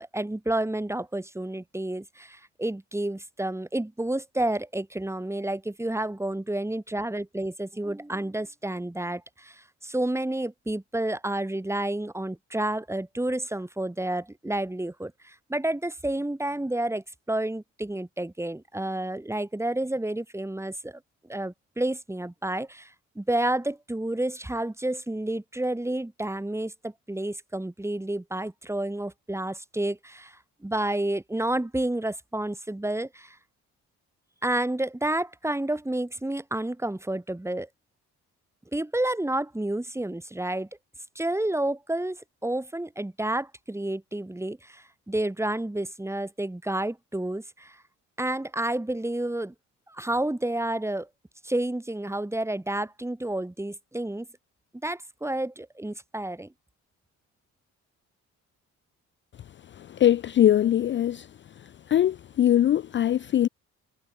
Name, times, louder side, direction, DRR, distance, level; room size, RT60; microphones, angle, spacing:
voice 1, 0.0-21.0 21.3-22.9 23.2-30.4 30.6-33.4 34.4-37.7 38.7-40.7 41.1-47.8 48.2-49.5 49.9-51.1 51.4-54.3 54.8-56.5, right 1 dB, 10° right, 4.4 m, -30 dB
voice 2, 59.8-61.3 61.6-63.5, left 11 dB, 40° left, 0.4 m, -22 dB
cardioid pair, 90°, 30 cm